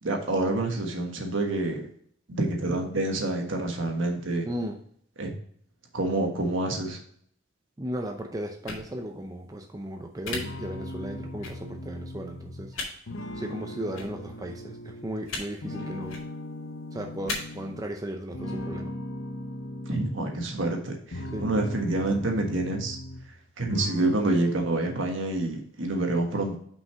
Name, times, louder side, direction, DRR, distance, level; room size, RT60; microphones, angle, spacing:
voice 1, 0.0-1.8 2.3-4.5 5.2-5.3 5.9-7.0 19.9-23.0 23.6-26.6, right 2 dB, 65° right, 3 dB, 1.5 m, -27 dB
voice 2, 4.4-4.8 7.8-12.8 13.3-16.2 16.9-18.9 21.3-21.5, right 1 dB, 15° right, 3 dB, 0.5 m, -36 dB
sound 1, 8.6-8.8 10.2-10.4 11.4-11.5 12.7-12.9 13.9-14.1 15.3-15.4 16.0-16.2 17.3-17.4, left 3 dB, 80° left, 2.3 m, -33 dB
sound 2, 10.3-15.2 15.6-17.9 18.3-20.5 20.9-23.4 23.7-24.6, left 1 dB, 65° left, 0.8 m, -38 dB
5.9 x 5.5 x 4.4 m, 0.62 s
head